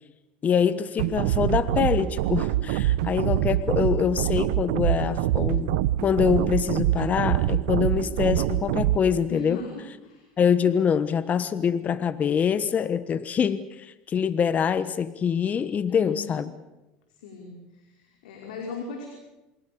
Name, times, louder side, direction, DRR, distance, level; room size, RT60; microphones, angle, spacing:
voice 1, 0.4-5.7 6.0-9.6 10.4-16.5, left 7 dB, 35° left, 14 dB, 1.1 m, -24 dB
sound 1, 1.0-9.0, right 14 dB, 75° right, 0.8 m, -25 dB
voice 2, 9.3-10.3 15.9-16.5 17.1-19.1, left 4 dB, 85° left, 0 dB, 5.1 m, -38 dB
28.0 x 23.0 x 7.0 m, 1.0 s
hypercardioid pair, 90°, 4 cm